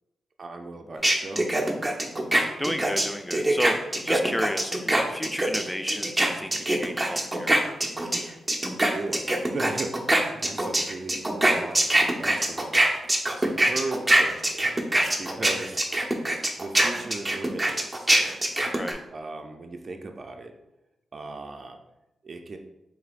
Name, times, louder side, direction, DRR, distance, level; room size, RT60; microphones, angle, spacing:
voice 1, 0.4-1.5 8.9-10.0 10.4-11.9 12.2-12.7 13.4-14.7 15.2-15.9 16.6-18.1 19.1-20.5 21.1-21.8 22.2-22.6, right 3 dB, 50° right, 4 dB, 0.5 m, -36 dB
sound 1, 1.0-8.2 8.5-18.9, right 1 dB, 15° right, 0.7 m, -23 dB
voice 2, 2.6-7.6 15.1-15.3 18.7-19.0, equal, 10° left, 8 dB, 0.4 m, -32 dB
4.7 x 3.8 x 2.5 m, 0.91 s
cardioid pair, 55°, 0 cm